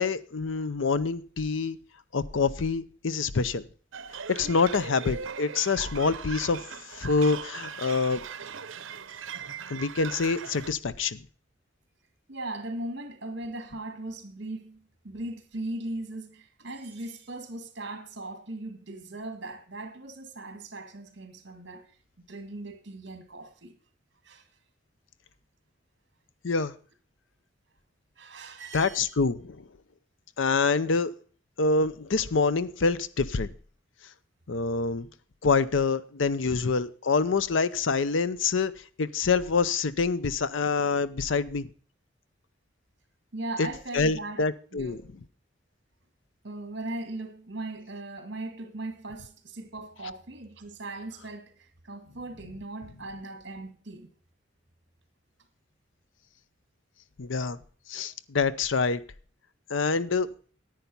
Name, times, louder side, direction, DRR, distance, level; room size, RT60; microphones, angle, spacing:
voice 1, 0.0-1.8 2.1-3.6 4.3-6.6 6.9-8.2 9.7-11.2 26.4-26.7 28.7-29.6 30.4-31.1 31.6-33.5 34.5-35.1 35.4-38.7 39.0-41.7 43.6-43.7 43.9-45.0 57.2-57.6 57.9-59.0 59.7-60.3, left 4 dB, 75° left, 0.6 m, -26 dB
sound 1, 3.9-10.7, right 6 dB, 85° right, 0.8 m, -39 dB
voice 2, 12.3-21.9 22.2-23.7 24.2-24.5 28.2-29.1 43.3-44.5 44.7-45.0 46.4-54.1 57.9-58.0, right 2 dB, 60° right, 2.1 m, -39 dB
10.5 x 9.2 x 5.5 m
head